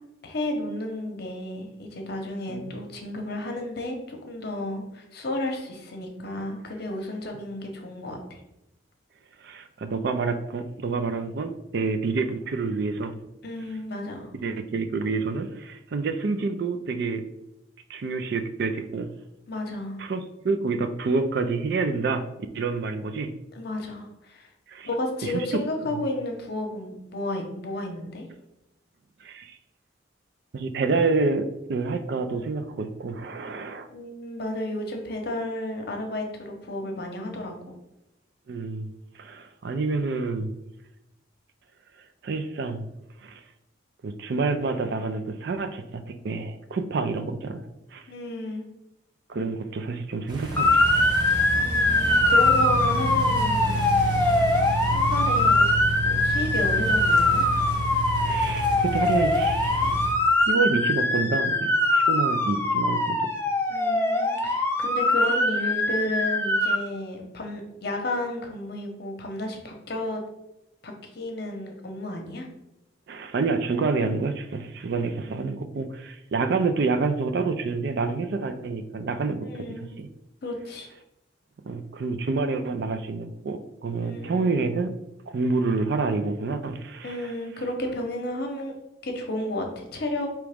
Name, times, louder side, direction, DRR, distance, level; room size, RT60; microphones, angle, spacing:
voice 1, 0.2-8.4 13.4-14.3 19.5-20.0 23.5-24.5 24.9-28.3 33.9-37.7 48.1-48.7 51.6-54.2 54.9-55.7 56.0-57.5 63.7-70.2 70.8-72.5 79.4-80.0 80.4-80.9 84.0-84.7 87.0-88.7 89.0-90.3, left 1 dB, 55° left, 3 dB, 0.8 m, -32 dB
voice 2, 9.4-13.2 14.4-17.2 17.9-19.1 20.0-22.2 22.5-23.3 24.7-24.9 25.2-25.6 25.9-26.0 29.2-29.6 30.5-33.9 38.5-38.9 39.2-40.5 42.2-42.8 43.2-43.4 44.0-47.6 47.9-48.0 49.3-51.1 54.8-55.0 58.1-59.9 60.5-63.3 73.1-79.7 80.0-80.1 81.7-84.9 85.3-87.3, right 4 dB, 55° right, 8 dB, 0.4 m, -28 dB
sound 1, 50.3-60.1, right 1 dB, 20° right, 0.7 m, -30 dB
Motor vehicle (road) / Siren, 50.6-66.8, left 2 dB, 10° left, 0.4 m, -22 dB
4.7 x 3.0 x 3.4 m, 0.88 s
head